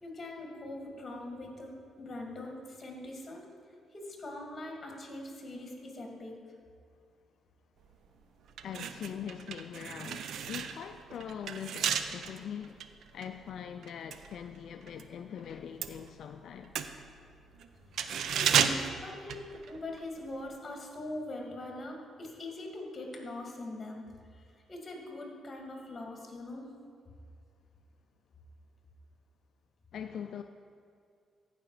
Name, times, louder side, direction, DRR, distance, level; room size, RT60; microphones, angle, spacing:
voice 1, 0.0-3.5 3.9-6.4 18.2-19.4 19.7-24.0 24.3-24.4 24.7-26.6, left 1 dB, 30° left, 2.2 m, -42 dB
sound 1, 7.9-8.1 8.5-15.1 15.4-20.0 20.3-20.5, right 7 dB, 70° right, 0.5 m, -34 dB
voice 2, 8.6-16.9 29.9-30.4, left 8 dB, 65° left, 0.3 m, -42 dB
15.0 x 5.0 x 4.8 m
cardioid pair, 90°, 0 cm